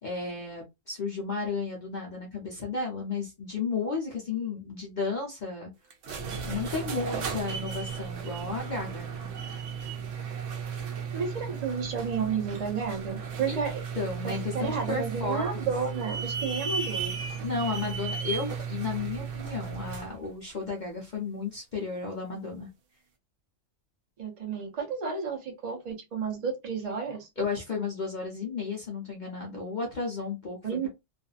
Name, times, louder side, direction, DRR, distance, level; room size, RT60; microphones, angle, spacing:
voice 1, 0.0-5.7 6.5-9.3 13.5-13.6 14.0-15.7 17.4-22.7 27.4-30.6, left 4 dB, 45° left, 0.7 m, -33 dB
sound 1, 5.9-20.2, right 6 dB, 75° right, 1.0 m, -35 dB
voice 2, 11.1-13.8 14.2-17.2 24.2-27.3 30.6-30.9, right 6 dB, 40° right, 0.8 m, -32 dB
2.6 x 2.5 x 2.4 m
omnidirectional pair, 1.3 m